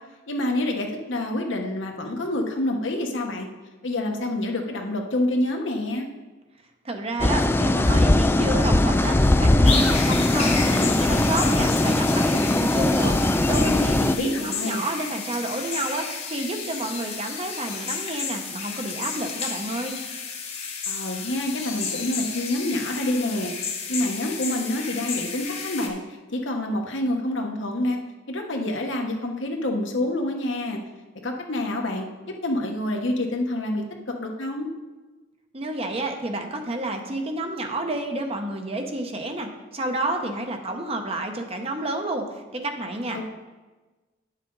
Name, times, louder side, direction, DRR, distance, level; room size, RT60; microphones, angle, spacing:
voice 1, 0.3-3.5 3.8-6.1 14.1-14.8 20.9-23.5 23.9-26.0 26.3-28.0 28.3-30.8 31.2-32.0 32.4-33.8 34.2-34.7, left 1 dB, 75° left, 2 dB, 1.2 m, -27 dB
voice 2, 6.8-16.0 16.3-20.0 35.5-43.3, right 1 dB, 30° right, 4 dB, 0.8 m, -30 dB
sound 1, 7.2-14.1, left 1 dB, 10° left, 0.3 m, -20 dB
sound 2, 9.6-25.9, left 5 dB, 35° left, 1.2 m, -32 dB
9.6 x 7.4 x 3.9 m, 1.2 s
head